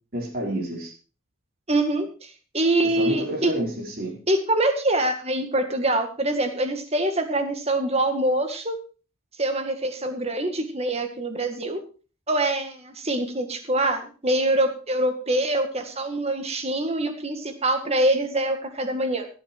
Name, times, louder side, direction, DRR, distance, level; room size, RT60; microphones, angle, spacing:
voice 1, 0.1-0.9 2.8-4.2, right 1 dB, 45° right, 0 dB, 4.7 m, -29 dB
voice 2, 1.7-3.5 4.3-8.8 9.4-11.8 12.3-19.3, right 1 dB, 30° right, 6 dB, 1.9 m, -24 dB
17.0 x 8.7 x 4.6 m, 0.37 s
head